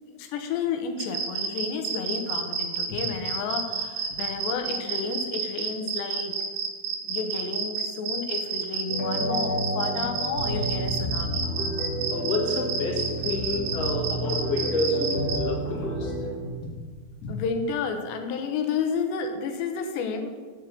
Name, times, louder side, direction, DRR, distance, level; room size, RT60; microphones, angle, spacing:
voice 1, 0.1-6.4 7.1-11.5 17.3-20.3, left 5 dB, 80° left, 6 dB, 3.0 m, -31 dB
sound 1, 1.0-15.4, right 5 dB, 90° right, 3.7 m, -30 dB
sound 2, 8.9-16.5, equal, 25° left, 2.6 m, -30 dB
voice 2, 12.1-16.3 17.2-17.3, left 2 dB, 50° left, -2 dB, 2.0 m, -29 dB
7.7 x 5.4 x 7.6 m, 1.5 s
omnidirectional pair, 5.1 m